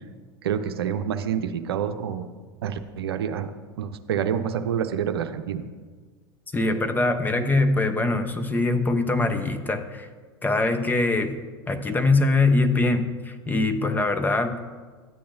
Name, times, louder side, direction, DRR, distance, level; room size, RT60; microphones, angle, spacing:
voice 1, 0.4-2.3 2.6-3.5 3.8-5.7, right 8 dB, 80° right, 8 dB, 0.6 m, -27 dB
voice 2, 6.5-10.1 10.4-11.4 11.7-14.6, left 2 dB, 15° left, 8 dB, 0.8 m, -23 dB
12.5 x 8.5 x 2.6 m, 1.5 s
hypercardioid pair, 90°, 13 cm